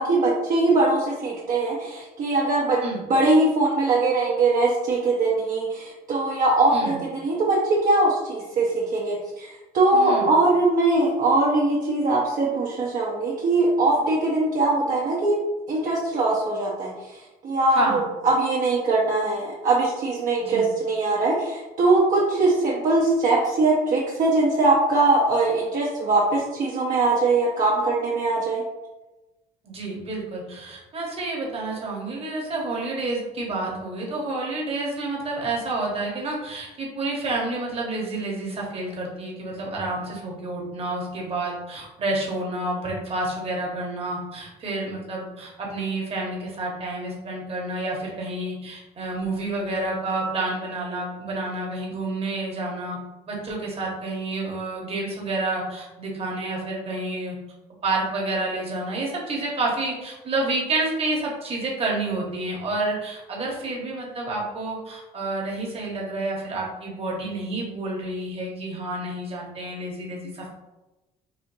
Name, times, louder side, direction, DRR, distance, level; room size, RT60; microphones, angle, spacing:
voice 1, 0.0-2.8 3.1-15.4 15.7-16.9 17.4-28.6, right 2 dB, 50° right, -5 dB, 0.8 m, -21 dB
voice 2, 6.7-7.0 9.9-10.3 17.7-18.1 20.4-20.7 29.6-53.0 53.3-57.4 57.8-70.5, right 2 dB, 35° right, -2 dB, 1.1 m, -29 dB
4.3 x 2.5 x 2.6 m, 1.0 s
cardioid pair, 110°, 17 cm